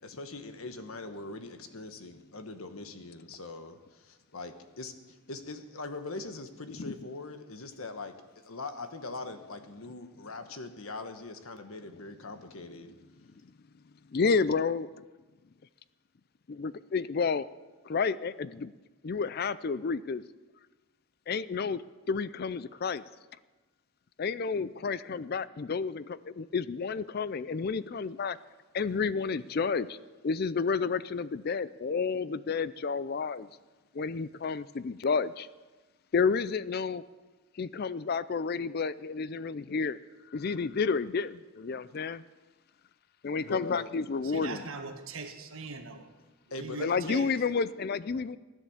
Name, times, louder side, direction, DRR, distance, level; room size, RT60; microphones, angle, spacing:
voice 1, 0.0-4.9 5.3-12.9 43.4-43.9 46.5-47.0, left 3 dB, 75° left, 8 dB, 1.3 m, -41 dB
voice 2, 14.1-14.9 16.5-17.5 17.8-18.7 19.0-20.2 21.3-21.8 22.1-23.0 24.2-28.4 28.7-30.0 30.2-33.5 33.9-35.5 36.1-37.0 37.6-40.0 40.3-42.2 43.2-44.7 46.8-48.4, left 5 dB, 45° left, 17 dB, 0.4 m, -30 dB
voice 3, 44.2-46.1 46.5-47.3, right 3 dB, 70° right, 5 dB, 1.6 m, -41 dB
16.0 x 11.0 x 7.2 m, 1.2 s
head